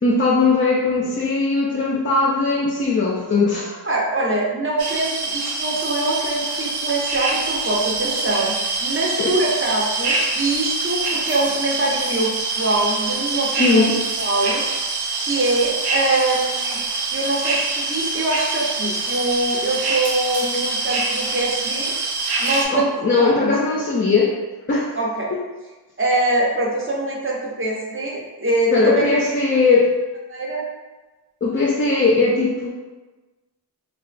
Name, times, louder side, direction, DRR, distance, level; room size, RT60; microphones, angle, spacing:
voice 1, 0.0-3.8 9.2-9.4 13.6-14.0 22.7-24.3 24.7-24.9 25.3-25.4 28.7-29.9 31.4-32.7, left 3 dB, 30° left, -3 dB, 0.4 m, -19 dB
voice 2, 3.8-8.5 8.8-13.9 14.2-14.6 15.2-16.8 17.1-21.9 22.4-23.5 24.9-25.3 26.0-29.2 30.3-30.7, right 2 dB, 30° right, -3 dB, 0.7 m, -23 dB
sound 1, 4.8-22.6, right 3 dB, 75° right, 0.6 m, -25 dB
3.6 x 2.2 x 2.4 m, 1.2 s
wide cardioid pair, 100°, 39 cm